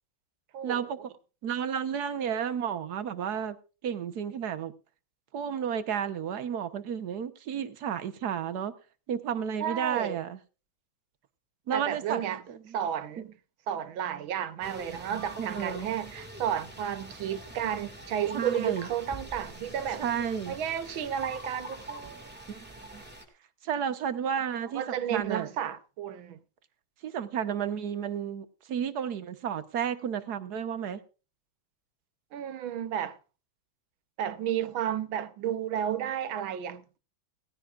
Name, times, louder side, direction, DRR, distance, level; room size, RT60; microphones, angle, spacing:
voice 1, 0.6-1.1 1.4-3.6 3.8-4.7 5.3-8.7 9.1-10.4 11.7-12.8 15.4-15.9 18.3-18.9 20.0-20.6 22.5-23.0 23.6-25.5 27.0-31.0, right 8 dB, 60° right, 1.4 m, -32 dB
voice 2, 9.6-10.2 11.7-12.4 12.7-13.3 13.7-20.0 20.5-22.3 24.7-26.4 32.3-33.2 34.2-36.8, right 9 dB, 90° right, 1.7 m, -32 dB
sound 1, 14.6-23.2, right 1 dB, 5° right, 1.8 m, -44 dB
18.0 x 15.0 x 2.4 m
omnidirectional pair, 2.1 m